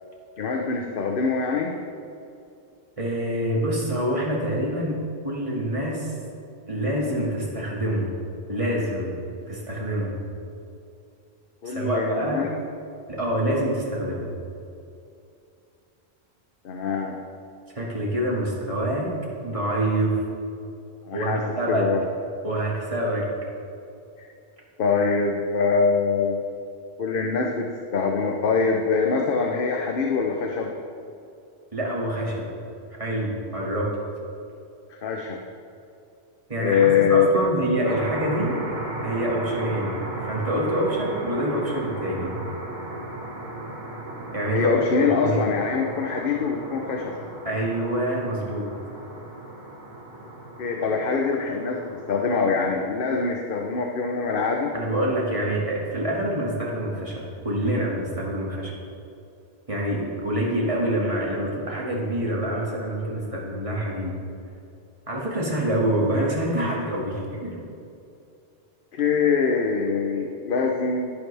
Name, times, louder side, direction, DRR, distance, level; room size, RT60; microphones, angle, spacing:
voice 1, 0.4-1.7 11.6-12.5 16.6-17.2 21.1-22.0 24.2-24.3 24.8-26.4 27.0-30.7 34.9-35.4 36.6-37.3 44.5-47.1 50.6-54.7 68.9-71.1, left 5 dB, 60° left, 2 dB, 0.9 m, -24 dB
voice 2, 3.0-6.1 6.7-8.1 8.5-9.2 9.5-10.1 11.6-12.4 13.1-14.3 17.7-19.1 19.4-20.2 21.1-21.9 22.4-23.3 31.7-32.5 33.0-33.9 36.5-38.6 39.0-42.4 44.3-45.4 47.5-48.7 54.7-58.7 59.7-64.2 65.1-67.6, right 1 dB, 30° right, -4 dB, 2.1 m, -26 dB
sound 1, 37.8-52.5, right 1 dB, 55° right, 2.0 m, -36 dB
11.5 x 10.5 x 3.4 m, 2.6 s
omnidirectional pair, 1.1 m